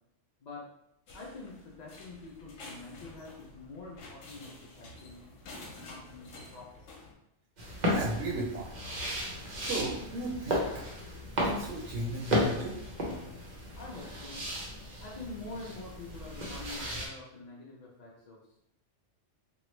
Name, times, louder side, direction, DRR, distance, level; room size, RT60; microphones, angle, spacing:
voice 1, 0.4-0.7 1.1-5.3 5.8-6.7 13.8-14.5 15.0-18.6, left 3 dB, 55° left, -3 dB, 0.4 m, -46 dB
sound 1, 1.1-7.1, left 2 dB, 80° left, 1.0 m, -50 dB
sound 2, 7.6-17.1, equal, 45° right, 0.6 m, -34 dB
voice 2, 7.9-8.7 9.6-10.7 11.4-12.8, right 2 dB, 75° right, -3 dB, 0.9 m, -35 dB
3.0 x 2.3 x 3.1 m, 0.80 s
omnidirectional pair, 1.3 m